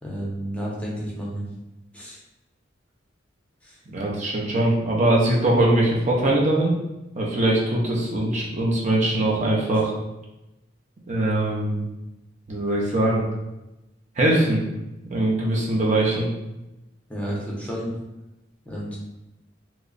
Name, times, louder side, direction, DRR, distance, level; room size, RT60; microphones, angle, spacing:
voice 1, 0.0-1.4 1.9-2.2 3.6-3.8 17.1-17.9 18.6-19.0, equal, 5° left, -5 dB, 0.7 m, -31 dB
voice 2, 3.9-6.7 7.2-9.9 11.1-11.8 12.5-13.2 14.2-14.6 15.1-16.3, right 1 dB, 40° right, -4 dB, 0.6 m, -21 dB
3.0 x 2.3 x 3.8 m, 0.96 s
head